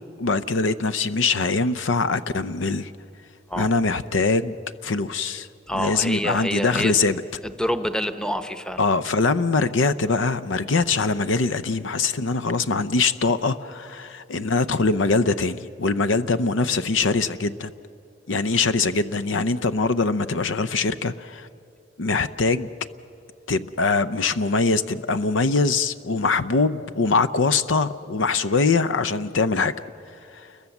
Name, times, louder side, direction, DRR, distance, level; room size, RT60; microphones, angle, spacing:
voice 1, 0.2-2.9 3.6-4.6 4.8-5.5 5.7-7.2 8.8-17.7 18.3-21.5 22.0-22.7 23.5-29.7 30.3-30.5, left 4 dB, 85° left, 14 dB, 0.7 m, -23 dB
voice 2, 5.7-7.0 7.4-8.8, equal, 5° left, 9 dB, 0.8 m, -27 dB
29.5 x 22.0 x 7.2 m, 2.6 s
head